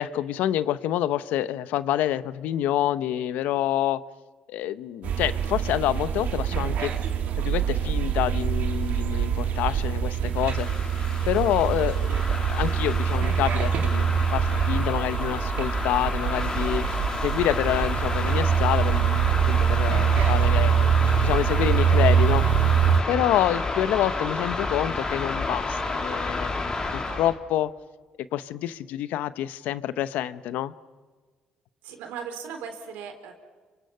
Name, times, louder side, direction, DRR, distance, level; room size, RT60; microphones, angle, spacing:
voice 1, 0.0-4.0 4.5-6.9 7.4-10.7 11.3-16.8 17.2-20.9 21.2-22.5 23.1-27.7 28.3-30.7, left 12 dB, 80° left, 15 dB, 0.8 m, -27 dB
sound 1, 5.0-23.0, right 8 dB, 70° right, 2.2 m, -24 dB
sound 2, 10.3-27.4, left 3 dB, 30° left, 3.6 m, -31 dB
sound 3, 13.0-19.0, left 4 dB, 50° left, 5.8 m, -47 dB
voice 2, 31.8-33.3, right 7 dB, 90° right, 6 dB, 3.6 m, -38 dB
29.5 x 25.0 x 5.6 m, 1.4 s
cardioid pair, 80°, 3 cm